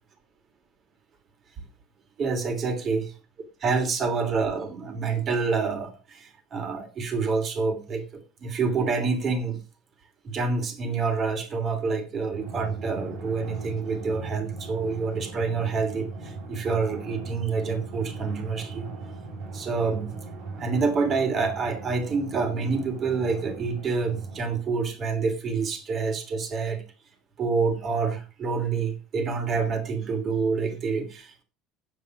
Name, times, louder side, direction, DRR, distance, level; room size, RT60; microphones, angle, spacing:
voice 1, 2.2-3.1 3.6-9.6 10.2-18.9 19.5-20.1 20.6-26.8 27.4-31.4, right 4 dB, 40° right, 6 dB, 3.1 m, -27 dB
Drum, 12.3-25.4, right 3 dB, 75° right, 4.6 m, -39 dB
9.1 x 8.9 x 6.0 m, 0.32 s
supercardioid pair, 110°, 0 cm